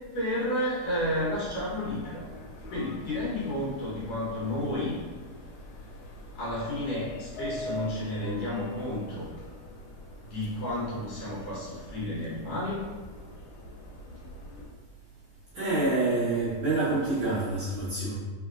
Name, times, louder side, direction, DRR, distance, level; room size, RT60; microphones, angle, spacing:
voice 1, 0.1-2.2 2.7-5.0 6.4-9.3 10.2-12.9, left 1 dB, 60° left, -8 dB, 1.8 m, -31 dB
Subway metro underground, 0.8-14.7, left 1 dB, 80° left, 2.6 m, -44 dB
voice 2, 15.5-18.2, right 2 dB, 75° right, -10 dB, 1.7 m, -27 dB
5.4 x 3.7 x 2.4 m, 1.3 s
omnidirectional pair, 4.5 m